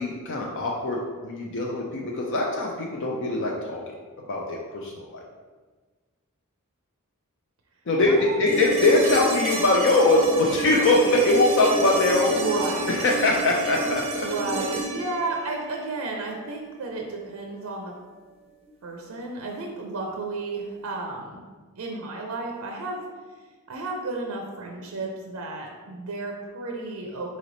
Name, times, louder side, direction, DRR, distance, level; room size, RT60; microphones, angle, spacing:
voice 1, 0.0-3.9 4.3-5.2 7.9-12.4 12.9-14.3, left 2 dB, 55° left, -1 dB, 0.5 m, -22 dB
voice 2, 8.1-8.6 12.3-12.9 14.2-17.9 18.8-21.4 21.8-23.0 23.7-27.4, right 3 dB, 80° right, 0 dB, 0.5 m, -32 dB
sound 1, 8.5-16.5 18.6-18.7, right 2 dB, 25° right, 0.5 m, -30 dB
4.1 x 3.2 x 3.8 m, 1.4 s
head